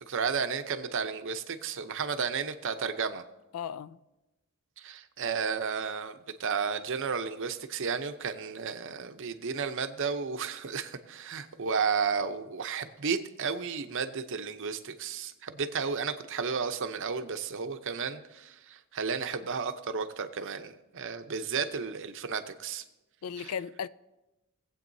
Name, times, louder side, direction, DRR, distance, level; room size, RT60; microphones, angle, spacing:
voice 1, 0.1-3.2 4.8-22.8 23.4-23.5, right 5 dB, 60° right, 0.7 m, -33 dB
voice 2, 3.5-4.0 23.2-23.9, left 7 dB, 70° left, 0.4 m, -36 dB
19.5 x 7.9 x 2.7 m
head